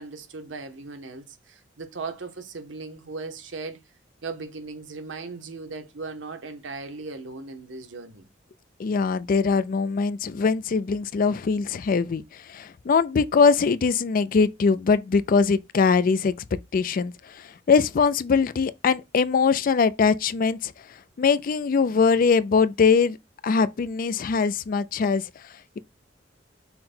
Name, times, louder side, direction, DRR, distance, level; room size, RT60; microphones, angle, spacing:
voice 1, 0.0-3.8 4.2-8.3, right 4 dB, 85° right, 0.9 m, -37 dB
voice 2, 8.8-16.3 16.7-20.7 21.2-23.2 23.4-25.2, left 5 dB, 50° left, 0.4 m, -22 dB
5.6 x 2.2 x 4.2 m
head